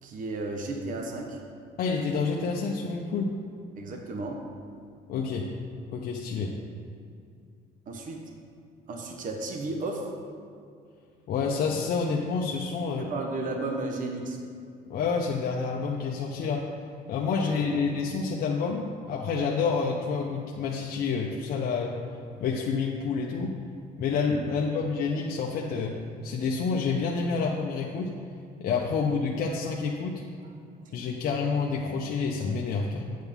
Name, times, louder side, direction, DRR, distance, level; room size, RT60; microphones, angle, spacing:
voice 1, 0.0-1.4 3.8-4.4 7.9-8.2 8.9-10.0 13.0-14.4 17.6-17.8 24.5-24.7 30.8-31.1, right 2 dB, 50° right, 2 dB, 1.0 m, -34 dB
voice 2, 1.8-3.3 5.1-5.5 5.9-6.5 11.3-13.1 14.9-16.6 17.1-21.9 22.4-23.5 24.0-25.9 26.2-28.1 28.6-30.2 30.9-33.2, left 5 dB, 65° left, -1 dB, 0.7 m, -28 dB
8.2 x 7.7 x 3.6 m, 2.4 s
cardioid pair, 110°, 17 cm